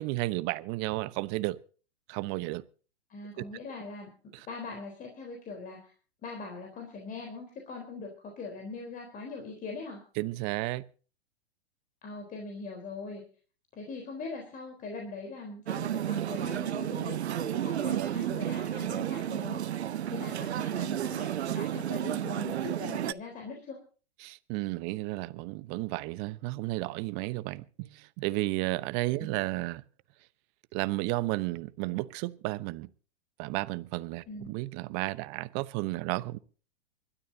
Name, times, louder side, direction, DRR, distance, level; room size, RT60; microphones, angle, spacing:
voice 1, 0.0-1.6 2.1-2.6 3.4-3.5 4.3-4.5 10.2-10.8 24.2-29.8 30.7-32.9 33.4-36.4, right 20 dB, 40° right, 1.0 m, -33 dB
voice 2, 3.1-4.1 4.5-5.9 6.2-10.0 12.0-13.2 13.7-23.8 29.2-29.3 34.3-34.5, left 3 dB, 25° left, 3.9 m, -41 dB
sound 1, 15.7-23.1, right 11 dB, 80° right, 0.7 m, -32 dB
25.5 x 13.0 x 2.8 m
hypercardioid pair, 115°, 32 cm